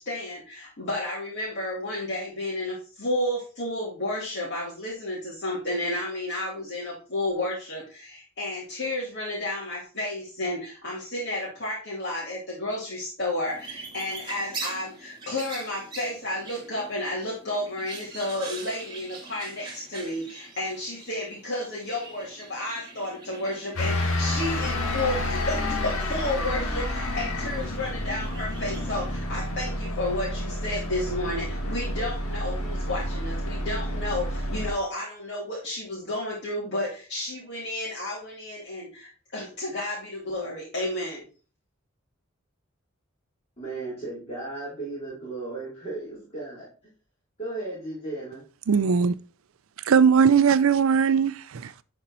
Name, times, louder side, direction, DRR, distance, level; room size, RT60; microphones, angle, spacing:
voice 1, 0.0-41.3, left 1 dB, 55° left, 2.5 m, -32 dB
sound 1, 13.5-29.2, right 3 dB, 20° right, 2.2 m, -43 dB
sound 2, 23.8-34.7, left 1 dB, 85° left, 1.6 m, -29 dB
voice 2, 43.6-46.7 47.4-48.4, right 2 dB, 30° left, 3.8 m, -35 dB
voice 3, 48.7-49.1 49.8-51.7, right 6 dB, 70° right, 0.4 m, -20 dB
11.0 x 4.4 x 4.3 m
head